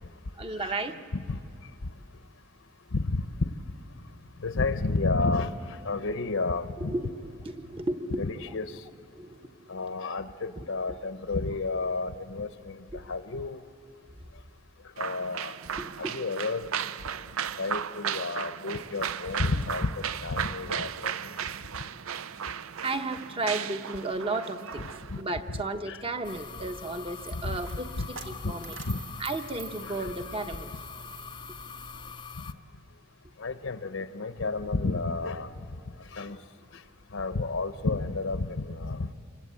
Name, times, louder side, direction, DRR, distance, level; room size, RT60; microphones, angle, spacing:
voice 1, 0.4-1.0 6.8-8.8 9.1-9.8 10.6-10.7 12.9-13.0 15.8-16.1 22.8-24.9 25.2-28.8 29.2-30.7, right 2 dB, 25° right, 7 dB, 1.0 m, -34 dB
voice 2, 2.9-3.2 4.4-6.9 8.2-8.7 9.7-13.6 15.0-15.5 16.0-16.7 17.6-19.9 20.2-21.2 25.9-26.0 27.3-27.6 28.0-28.1 28.4-28.5 28.9-29.0 29.9-30.1 33.4-35.5 36.1-36.4 37.1-39.1, left 3 dB, 65° left, 11 dB, 0.8 m, -31 dB
sound 1, 15.0-25.2, right 8 dB, 85° right, 0.6 m, -35 dB
Coin (dropping), 26.1-32.2, right 6 dB, 65° right, 1.9 m, -49 dB
sound 2, 26.2-32.5, left 6 dB, 20° left, 0.6 m, -43 dB
27.0 x 24.5 x 8.5 m, 2.5 s
head